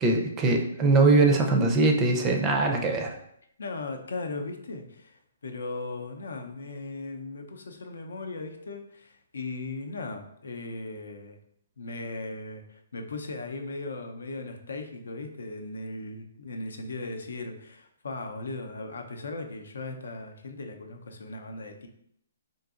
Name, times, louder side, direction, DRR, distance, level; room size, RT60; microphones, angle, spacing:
voice 1, 0.0-3.2, right 3 dB, 20° right, 3 dB, 0.4 m, -22 dB
voice 2, 3.6-11.4 11.8-21.9, left 2 dB, 80° left, 5 dB, 0.5 m, -38 dB
3.8 x 2.7 x 2.4 m, 0.72 s
hypercardioid pair, 145°, 0 cm